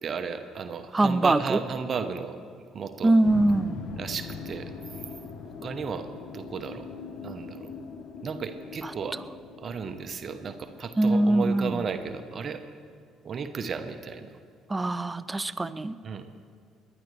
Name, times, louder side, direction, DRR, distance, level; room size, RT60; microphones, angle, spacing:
voice 1, 0.0-3.1 4.0-4.7 5.4-6.8 7.2-7.7 8.2-9.2 9.6-12.6 13.2-14.3 16.0-16.3, right 5 dB, 45° right, 8 dB, 1.1 m, -34 dB
voice 2, 0.9-1.6 3.0-3.8 8.8-8.9 11.0-11.9 14.7-16.0, right 2 dB, 20° right, 15 dB, 0.6 m, -23 dB
sound 1, 3.2-12.2, left 5 dB, 55° left, 1.2 m, -42 dB
29.0 x 11.0 x 3.4 m, 2.2 s
figure-of-eight pair, 50°, 0 cm